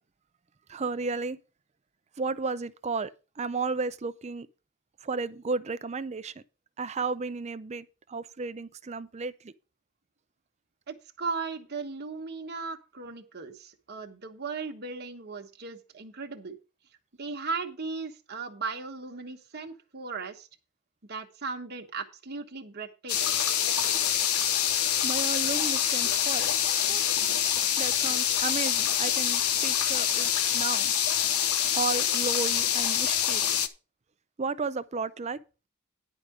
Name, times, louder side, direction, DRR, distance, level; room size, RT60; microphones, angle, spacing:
voice 1, 0.7-1.4 2.2-3.1 3.4-4.5 5.0-6.4 6.8-9.5 25.0-27.0 27.8-30.9 31.7-33.6 34.4-35.4, right 4 dB, 30° right, 0.5 m, -33 dB
voice 2, 10.9-16.6 17.2-20.5 21.1-23.4, right 4 dB, 50° right, 1.2 m, -37 dB
sound 1, 23.1-33.7, left 9 dB, 90° left, 0.9 m, -26 dB
10.5 x 4.8 x 6.6 m
head